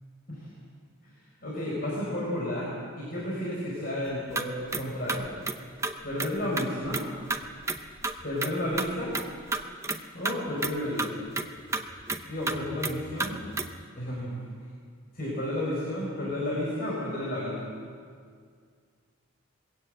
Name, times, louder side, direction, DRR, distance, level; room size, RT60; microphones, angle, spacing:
voice 1, 1.4-2.7 3.0-5.4 6.0-7.0 8.2-9.1 10.1-11.1 12.3-13.4 14.0-14.4 15.1-17.6, left 1 dB, 45° left, -5 dB, 4.5 m, -32 dB
sound 1, 4.1-4.4 4.7-4.8 5.1-6.3 6.6-7.0 7.3-7.8 8.0-10.0 10.2-10.3 10.6-10.7 11.0-13.8, right 3 dB, 15° right, 0.7 m, -31 dB
21.0 x 16.5 x 7.7 m, 2.1 s
head